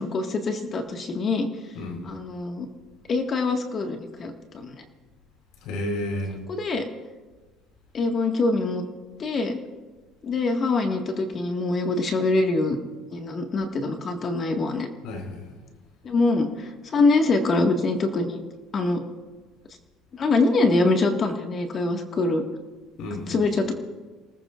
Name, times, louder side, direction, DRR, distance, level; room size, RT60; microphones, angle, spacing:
voice 1, 0.0-1.5 2.0-2.7 3.1-4.8 6.5-6.9 7.9-8.8 9.2-9.6 10.2-12.8 13.1-14.9 16.0-18.4 18.7-19.0 20.1-22.4 23.3-23.7, left 3 dB, 40° left, 4 dB, 1.8 m, -24 dB
voice 2, 1.7-2.1 5.6-6.3 15.0-15.6 23.0-23.4, left 1 dB, 75° left, 3 dB, 4.2 m, -31 dB
28.0 x 19.0 x 2.5 m, 1.3 s
cardioid pair, 115°, 0 cm